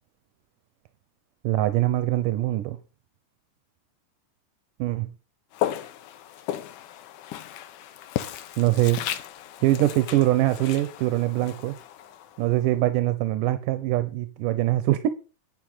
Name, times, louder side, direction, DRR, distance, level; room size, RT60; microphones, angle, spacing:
voice 1, 1.4-2.8 4.8-5.1 8.6-9.0 9.6-11.8 12.4-15.1, right 15 dB, 90° right, 2.4 m, -23 dB
Walk footsteps, 5.5-12.7, left 12 dB, 75° left, 2.4 m, -35 dB
9.8 x 9.4 x 5.6 m
omnidirectional pair, 3.7 m